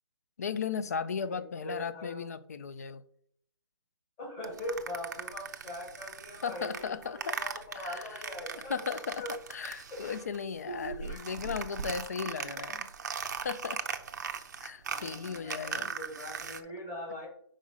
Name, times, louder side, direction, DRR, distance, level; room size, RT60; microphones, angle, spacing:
voice 1, 0.4-3.0 6.4-7.4 7.8-8.2 8.7-12.9 13.3-13.8 14.6-15.9, left 6 dB, 35° left, 0.4 m, -36 dB
voice 2, 1.2-2.3 4.2-8.8 9.2-9.3 9.9-10.2 10.6-11.5 12.3-12.6 14.9-17.3, equal, 20° left, 2.0 m, -42 dB
sound 1, 4.4-10.5 10.7-16.6, right 6 dB, 40° right, 0.6 m, -39 dB
5.0 x 4.9 x 5.5 m
hypercardioid pair, 170°, 15 cm